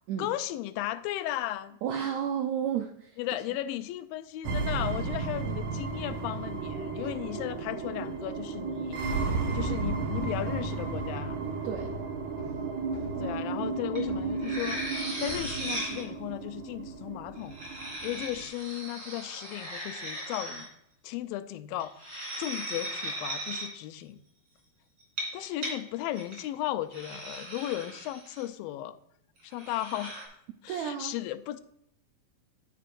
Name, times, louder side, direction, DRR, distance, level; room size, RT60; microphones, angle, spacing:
voice 1, 0.2-1.8 3.2-9.0 9.5-11.4 13.2-14.8 15.2-17.6 18.0-20.7 21.0-24.2 25.3-29.0 29.4-30.3 30.6-31.6, left 14 dB, 90° left, 12 dB, 2.4 m, -35 dB
voice 2, 1.8-3.2 11.6-11.9 30.5-31.2, right 9 dB, 85° right, 5 dB, 1.5 m, -32 dB
sound 1, 4.4-18.4, right 4 dB, 65° right, 2.5 m, -33 dB
sound 2, 9.8-15.0 15.3-16.4, left 3 dB, 65° left, 2.2 m, -45 dB
sound 3, 14.0-14.1 14.4-16.0 17.4-20.7 21.8-23.7 25.0-25.7 26.1-26.4 26.9-28.4 29.5-30.2, right 1 dB, 35° right, 3.5 m, -38 dB
10.5 x 9.8 x 2.5 m, 0.75 s
omnidirectional pair, 4.1 m